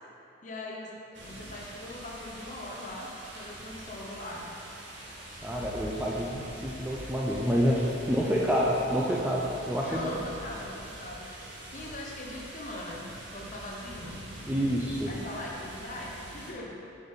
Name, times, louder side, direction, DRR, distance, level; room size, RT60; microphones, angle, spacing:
voice 1, 0.4-4.5 9.9-11.3 11.6-14.1 15.0-16.8, left 1 dB, 40° left, -2 dB, 0.7 m, -41 dB
sound 1, 1.1-16.5, right 1 dB, 60° right, 1.1 m, -44 dB
voice 2, 5.4-10.1 14.4-15.1, equal, 10° right, -4 dB, 0.4 m, -28 dB
5.9 x 5.1 x 4.0 m, 2.7 s
head